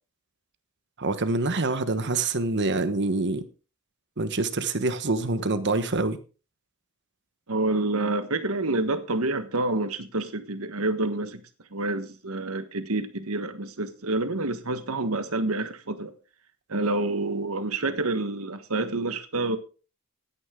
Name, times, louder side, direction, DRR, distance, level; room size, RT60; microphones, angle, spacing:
voice 1, 1.0-3.4 4.2-6.2, right 3 dB, 50° right, 1.2 m, -26 dB
voice 2, 7.5-11.4 11.7-16.1 16.7-19.6, right 2 dB, 70° right, 1.4 m, -28 dB
15.0 x 10.0 x 3.8 m
head